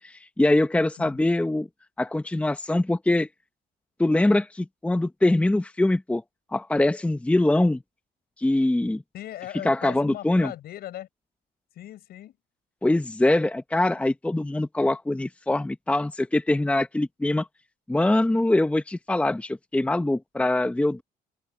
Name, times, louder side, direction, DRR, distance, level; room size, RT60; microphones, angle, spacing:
voice 1, 0.0-1.7 2.0-3.3 4.0-6.2 6.5-7.8 8.4-9.0 9.6-10.5 12.8-17.5 17.9-21.0, left 2 dB, 5° left, 0.9 m, -23 dB
voice 2, 1.0-1.3 9.1-11.1 11.7-12.3, left 13 dB, 70° left, 7.3 m, -39 dB
open air
cardioid pair, 110°, 17 cm